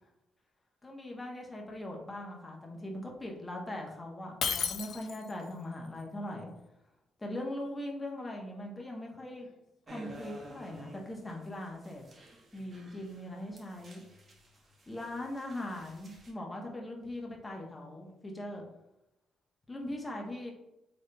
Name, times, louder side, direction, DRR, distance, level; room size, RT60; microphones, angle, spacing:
voice 1, 0.8-6.5 7.2-9.5 9.9-12.0 12.5-14.0 14.9-18.6 19.7-20.5, left 1 dB, 20° left, 0 dB, 1.0 m, -40 dB
Shatter, 4.4-5.4, left 7 dB, 65° left, 0.4 m, -33 dB
sound 1, 9.9-16.3, right 1 dB, 40° right, 0.9 m, -52 dB
4.0 x 3.6 x 2.2 m, 0.93 s
cardioid pair, 90°, 0 cm